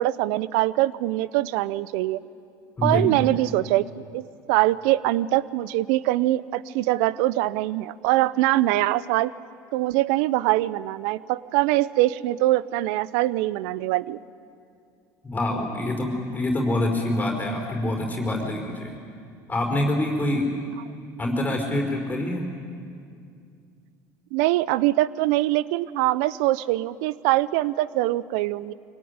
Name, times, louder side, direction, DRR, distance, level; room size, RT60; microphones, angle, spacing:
voice 1, 0.0-2.2 2.8-3.8 4.1-4.2 4.5-9.3 9.7-14.2 24.3-28.7, right 16 dB, 75° right, 19 dB, 0.6 m, -23 dB
voice 2, 2.8-3.3 15.2-19.0 19.5-20.5 21.2-22.5, left 1 dB, 20° left, 1 dB, 4.7 m, -26 dB
25.0 x 18.0 x 9.7 m, 2.4 s
supercardioid pair, 90°, 9 cm